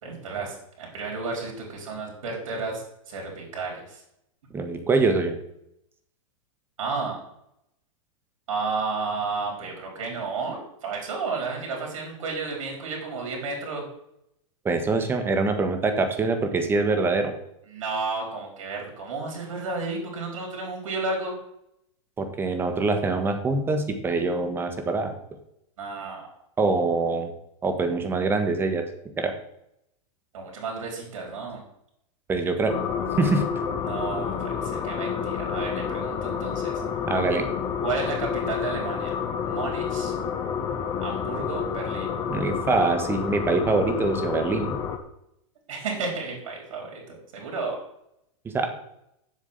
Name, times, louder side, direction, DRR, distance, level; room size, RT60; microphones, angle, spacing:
voice 1, 0.0-4.0 6.8-7.2 8.5-13.8 17.7-21.3 25.8-26.3 30.3-31.6 33.8-36.8 37.8-39.2 39.5-40.1 41.0-42.1 45.7-47.8, right 4 dB, 75° right, 0 dB, 4.6 m, -32 dB
voice 2, 4.5-5.4 14.6-17.3 22.2-25.1 26.6-27.3 27.6-28.8 29.2-29.3 32.3-32.8 33.2-33.4 37.1-37.5 42.3-44.8 48.5-48.7, right 3 dB, 15° right, 7 dB, 1.4 m, -24 dB
sound 1, 32.7-45.0, left 7 dB, 20° left, 1.1 m, -29 dB
7.4 x 7.4 x 8.2 m, 0.79 s
supercardioid pair, 150°, 17 cm